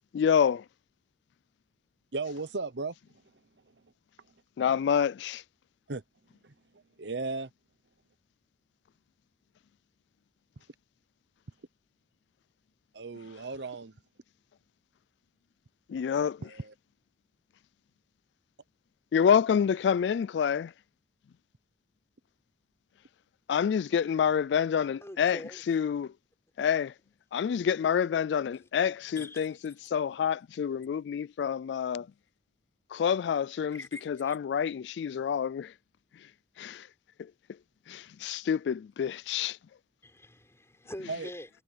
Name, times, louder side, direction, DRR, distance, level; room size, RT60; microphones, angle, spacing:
voice 1, 0.1-0.6 4.6-5.4 15.9-16.4 19.1-20.7 23.5-25.4 25.7-26.1 26.6-26.9 27.3-32.1 32.9-35.7 36.6-36.9 37.2-37.3 37.9-39.6, left 7 dB, 80° left, 0.3 m, -27 dB
voice 2, 2.1-2.9 3.7-3.8 5.9-6.0 6.4-7.5 10.6-10.7 12.9-13.9 16.4-16.7 41.1-41.3, right 3 dB, 80° right, 0.9 m, -36 dB
voice 3, 25.0-25.6 29.2-29.5 33.7-34.4 40.0-41.5, left 1 dB, 15° left, 4.9 m, -44 dB
head